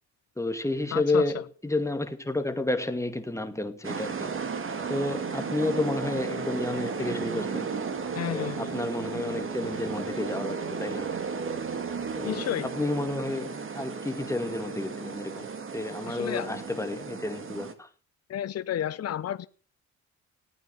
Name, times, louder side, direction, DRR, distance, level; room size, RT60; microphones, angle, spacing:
voice 1, 0.4-4.3 4.9-7.8 8.3-11.1 12.2-12.5 12.7-17.9, left 2 dB, 10° left, 2.1 m, -31 dB
voice 2, 0.9-1.3 8.1-8.7 12.2-12.7 16.1-16.5 18.3-19.5, left 11 dB, 55° left, 0.9 m, -31 dB
sound 1, 3.8-17.7, right 5 dB, 45° right, 2.3 m, -34 dB
17.5 x 9.1 x 7.0 m
cardioid pair, 90°, 30 cm